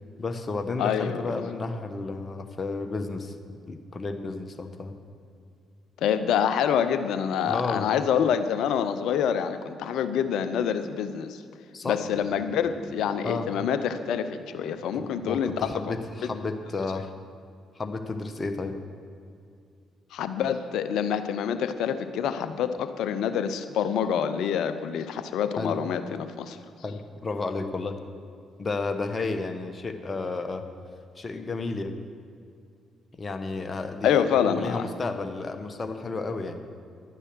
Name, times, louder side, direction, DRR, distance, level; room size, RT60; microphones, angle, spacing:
voice 1, 0.2-3.3 3.7-4.9 7.5-7.9 11.7-12.0 13.2-13.5 14.9-17.1 17.7-18.8 25.6-25.8 26.8-28.0 28.6-30.6 31.2-32.0 33.2-36.6, left 3 dB, 35° left, 7 dB, 1.3 m, -32 dB
voice 2, 0.8-1.4 6.0-11.4 11.8-15.7 20.1-26.6 34.0-34.8, left 8 dB, 65° left, 10 dB, 0.7 m, -26 dB
sound 1, 11.9-15.3 15.6-15.7, right 1 dB, 90° right, 3.0 m, -46 dB
11.5 x 9.9 x 6.2 m, 2.4 s
hypercardioid pair, 45°, 0 cm